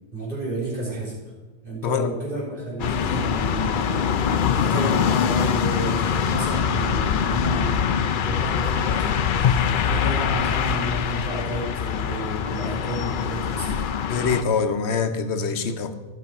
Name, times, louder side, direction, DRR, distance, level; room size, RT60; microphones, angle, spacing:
voice 1, 0.1-1.1 1.6-4.2 4.6-13.9, right 1 dB, 55° right, -6 dB, 4.3 m, -31 dB
voice 2, 1.8-2.1 14.1-15.9, left 5 dB, 90° left, 9 dB, 1.1 m, -24 dB
sound 1, 2.8-14.4, left 7 dB, 60° left, 0.7 m, -23 dB
13.5 x 6.0 x 5.2 m, 1.2 s
omnidirectional pair, 1.1 m